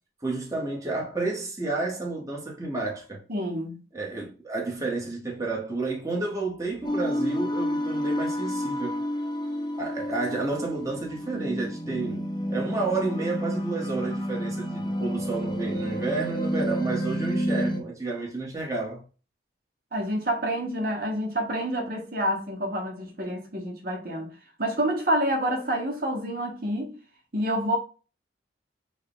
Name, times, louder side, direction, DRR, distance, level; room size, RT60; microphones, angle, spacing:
voice 1, 0.2-3.2 3.9-9.0 9.8-12.2 12.5-19.0, right 3 dB, 20° right, 1.0 m, -31 dB
voice 2, 3.3-3.8 19.9-24.3 24.6-27.0 27.3-27.8, right 1 dB, 55° right, 1.0 m, -28 dB
sound 1, 6.8-17.8, equal, 25° left, 0.6 m, -30 dB
6.3 x 2.3 x 3.5 m
head